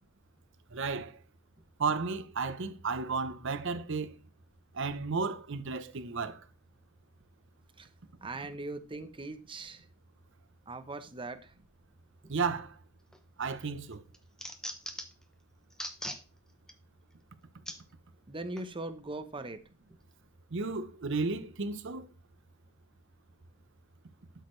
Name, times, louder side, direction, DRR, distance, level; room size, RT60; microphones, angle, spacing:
voice 1, 0.7-1.1 1.8-4.1 4.7-6.4 12.3-12.8 13.4-14.0 20.5-22.1, right 4 dB, 60° right, 0.8 m, -33 dB
voice 2, 8.2-9.8 10.7-11.4 18.3-19.6, right 2 dB, 25° right, 0.8 m, -40 dB
sound 1, 13.1-13.5 13.9-15.2 15.7-16.2 16.7-16.8 17.7-17.8 18.6-18.7, equal, 5° left, 1.0 m, -40 dB
12.5 x 6.4 x 3.2 m
head